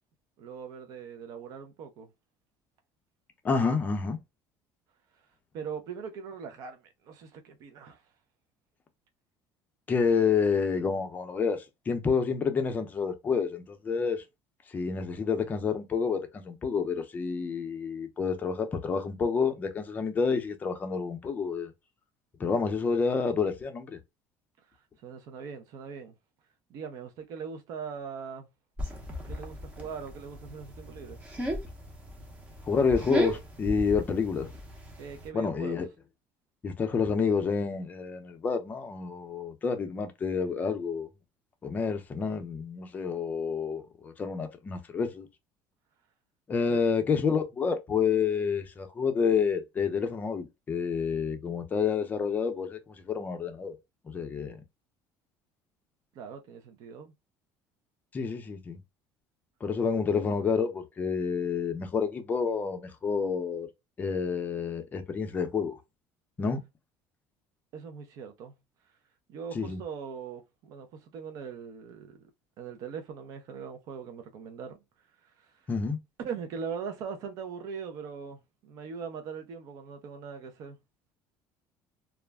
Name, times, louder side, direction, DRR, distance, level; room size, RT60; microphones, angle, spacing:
voice 1, 0.4-2.1 5.5-8.0 25.0-26.1 26.7-28.5 29.2-31.2 35.0-35.8 46.7-46.8 56.1-57.1 67.7-68.5 69.3-72.3 72.6-74.8 75.2-75.6 76.2-80.8, right 6 dB, 60° right, 0.6 m, -41 dB
voice 2, 3.4-4.2 9.9-14.2 14.7-21.7 22.4-24.0 32.6-34.5 35.3-35.9 36.6-41.1 41.6-45.3 46.5-53.7 54.0-54.6 58.1-58.8 59.6-63.7 64.0-65.8 66.4-66.6 69.5-69.8 75.7-76.0, left 5 dB, 25° left, 0.5 m, -29 dB
sound 1, 28.8-35.3, equal, 15° right, 0.7 m, -36 dB
2.4 x 2.0 x 3.3 m
cardioid pair, 145°, 7 cm